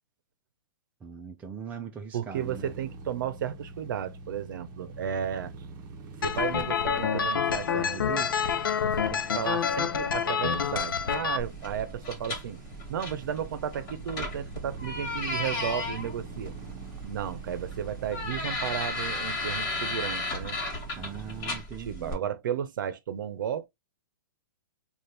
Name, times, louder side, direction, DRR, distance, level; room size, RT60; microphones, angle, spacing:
voice 1, 1.0-2.7 21.0-22.3, right 6 dB, 15° right, 0.5 m, -41 dB
voice 2, 2.1-5.5 6.2-8.3 8.8-12.6 12.9-16.5 17.0-20.6 21.9-23.7, right 9 dB, 70° right, 0.7 m, -34 dB
sound 1, 2.4-21.6, right 3 dB, 35° right, 1.0 m, -45 dB
sound 2, 6.2-11.4, left 7 dB, 85° left, 0.6 m, -27 dB
sound 3, 11.4-22.1, left 2 dB, 35° left, 1.6 m, -35 dB
4.2 x 2.5 x 3.3 m
hypercardioid pair, 145°, 11 cm